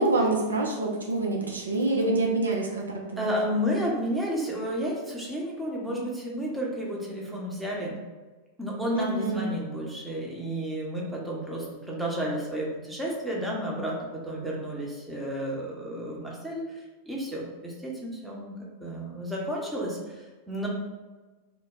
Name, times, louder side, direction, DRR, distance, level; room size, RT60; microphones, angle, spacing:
voice 1, 0.0-3.3 8.9-9.5, right 2 dB, 70° right, 0 dB, 0.4 m, -26 dB
voice 2, 3.2-8.0 8.6-16.7 17.1-18.5 18.8-20.0 20.5-20.7, equal, 5° right, -4 dB, 0.8 m, -31 dB
3.0 x 2.1 x 3.6 m, 1.2 s
figure-of-eight pair, 90°, 0 cm